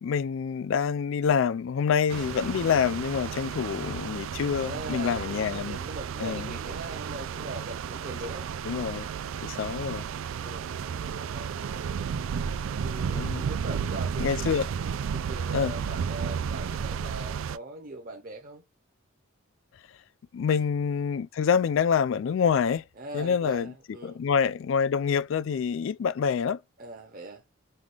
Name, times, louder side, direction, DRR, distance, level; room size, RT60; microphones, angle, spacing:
voice 1, 0.0-5.8 6.2-6.5 8.7-9.1 9.4-10.0 13.1-13.4 14.2-14.7 15.5-15.7 20.3-22.8 23.1-23.7 24.0-26.6, left 6 dB, 65° left, 0.3 m, -26 dB
sound 1, 2.1-17.6, right 7 dB, 70° right, 0.4 m, -33 dB
voice 2, 4.6-8.5 9.4-9.7 10.4-11.7 12.8-14.6 15.1-18.6 20.5-20.7 23.0-24.2 26.8-27.4, right 2 dB, 40° right, 0.7 m, -41 dB
5.5 x 2.3 x 3.3 m
head